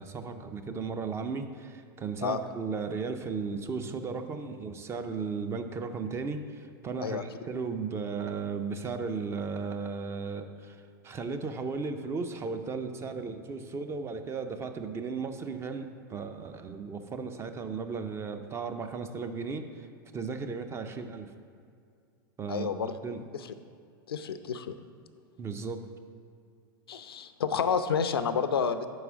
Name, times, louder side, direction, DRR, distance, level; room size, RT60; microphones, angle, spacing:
voice 1, 0.0-19.9 20.1-21.3 22.4-22.7 23.0-23.2 25.4-25.8, right 5 dB, 20° right, 7 dB, 0.5 m, -35 dB
voice 2, 22.5-22.9 24.1-24.7 26.9-28.9, left 6 dB, 90° left, 11 dB, 0.4 m, -29 dB
5.3 x 4.8 x 6.0 m, 2.3 s
hypercardioid pair, 110°, 12 cm